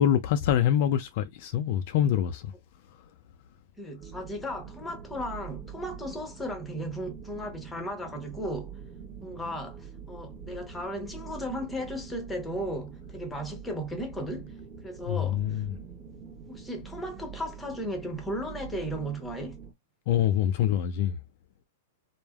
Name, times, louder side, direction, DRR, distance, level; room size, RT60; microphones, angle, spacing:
voice 1, 0.0-2.5 2.8-3.1 15.1-15.8 20.1-21.2, left 10 dB, 50° left, 0.3 m, -25 dB
voice 2, 3.8-8.8 9.2-14.5 14.8-15.6 16.5-19.6, equal, 5° left, 0.8 m, -35 dB
sound 1, 4.0-19.7, right 6 dB, 40° right, 0.8 m, -45 dB
3.2 x 2.0 x 2.3 m
supercardioid pair, 150°, 0 cm